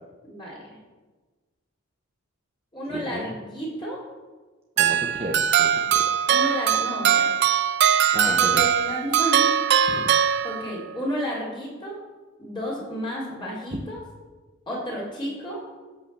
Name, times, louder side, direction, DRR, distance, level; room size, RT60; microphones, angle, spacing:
voice 1, 0.2-0.8 2.7-4.0 5.8-5.9 6.3-7.3 8.2-9.5 9.8-10.0 10.4-12.0 12.4-14.0 14.7-15.6, equal, 20° left, -6 dB, 4.0 m, -32 dB
voice 2, 2.9-3.4 4.8-6.3 8.1-8.6 9.9-10.1 13.7-13.8, right 1 dB, 30° right, 1 dB, 1.0 m, -33 dB
sound 1, 4.8-10.9, right 9 dB, 55° right, 0.6 m, -21 dB
16.0 x 5.7 x 7.0 m, 1.3 s
head